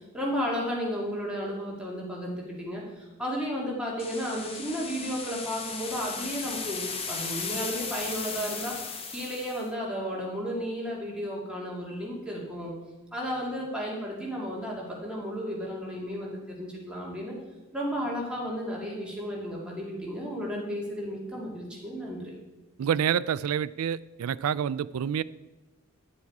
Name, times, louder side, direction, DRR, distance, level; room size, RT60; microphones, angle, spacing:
voice 1, 0.0-12.7 13.1-17.4 17.7-22.3, equal, 5° right, -4 dB, 2.1 m, -33 dB
sound 1, 4.0-9.7, left 4 dB, 25° left, 0.9 m, -36 dB
voice 2, 22.8-25.2, right 8 dB, 80° right, 18 dB, 0.3 m, -28 dB
10.5 x 7.3 x 4.7 m, 1.1 s
head